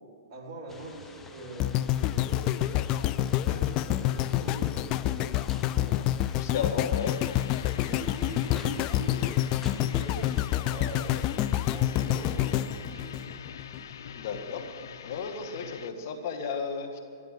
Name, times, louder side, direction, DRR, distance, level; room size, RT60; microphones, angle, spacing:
voice 1, 0.3-5.9 7.8-11.1 11.5-13.3, right 2 dB, 35° right, -3 dB, 3.8 m, -42 dB
sound 1, 0.7-10.5, left 4 dB, 10° left, 0.9 m, -49 dB
sound 2, 1.6-13.8 14.3-14.4, left 14 dB, 30° left, 0.5 m, -28 dB
voice 2, 6.3-7.2 14.1-14.7 15.0-17.0, left 6 dB, 55° left, 5 dB, 1.8 m, -33 dB
sound 3, 6.9-15.9, left 8 dB, 70° left, 0.8 m, -44 dB
13.5 x 12.0 x 7.6 m, 2.6 s
hypercardioid pair, 135°, 2 cm